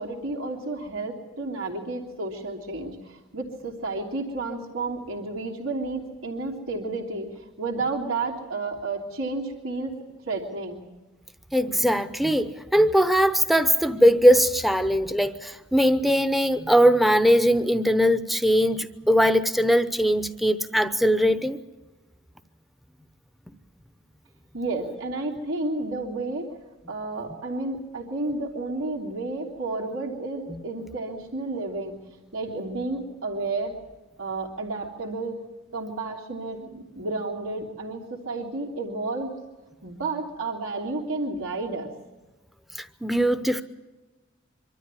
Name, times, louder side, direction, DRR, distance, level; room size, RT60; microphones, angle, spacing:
voice 1, 0.0-7.3 7.6-10.0 10.3-10.8 24.5-26.5 26.9-32.0 32.3-33.8 34.2-35.4 35.7-39.3 39.8-41.9, right 3 dB, 85° right, -1 dB, 3.2 m, -31 dB
voice 2, 11.5-21.6 42.8-43.6, equal, ahead, 11 dB, 0.8 m, -20 dB
25.0 x 13.0 x 9.8 m, 1.2 s
head